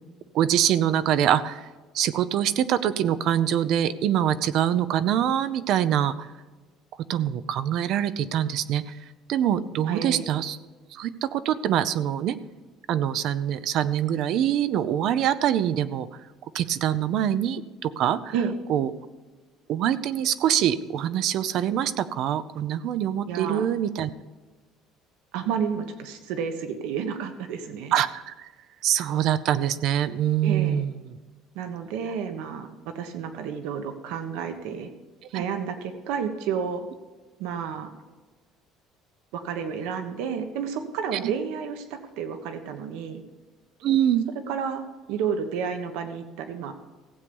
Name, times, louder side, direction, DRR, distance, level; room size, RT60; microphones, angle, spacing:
voice 1, 0.3-1.7 1.9-6.3 7.1-9.0 9.3-10.6 10.9-12.4 12.9-16.1 16.5-18.3 18.7-18.9 19.7-24.1 27.9-28.5 28.8-30.9 35.3-35.4 41.2-41.3 43.8-44.3, right 10 dB, 50° right, 15 dB, 0.6 m, -24 dB
voice 2, 9.9-10.2 18.3-18.5 23.3-23.7 25.3-27.9 30.4-30.8 31.5-34.9 35.3-36.9 37.4-37.9 39.3-43.2 44.5-44.8 45.1-46.7, right 7 dB, 80° right, 8 dB, 1.3 m, -31 dB
16.0 x 8.3 x 5.4 m, 1.3 s
cardioid pair, 175°, 0 cm